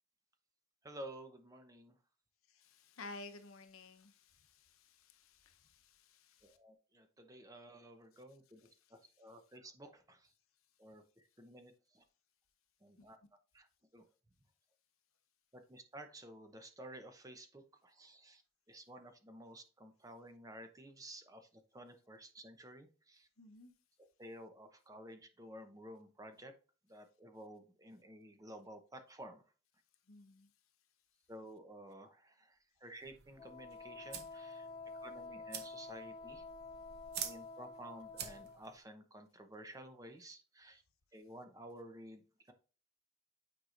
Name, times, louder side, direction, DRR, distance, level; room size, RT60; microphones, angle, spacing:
voice 1, 0.8-2.0 6.4-10.3 10.8-12.0 12.8-13.2 13.5-13.7 13.9-14.1 15.5-18.4 18.7-23.3 24.2-26.5 26.9-29.5 31.3-34.7 35.0-36.4 37.2-40.8 41.1-42.5, right 1 dB, 15° right, 0.8 m, -53 dB
voice 2, 2.5-6.6 13.0-13.1 23.4-23.7 30.1-30.5, left 2 dB, 80° left, 0.9 m, -54 dB
sound 1, 33.0-38.8, right 8 dB, 50° right, 0.9 m, -49 dB
Wind instrument woodwind instrument, 33.4-38.6, left 3 dB, 20° left, 0.6 m, -49 dB
9.2 x 4.7 x 2.5 m
head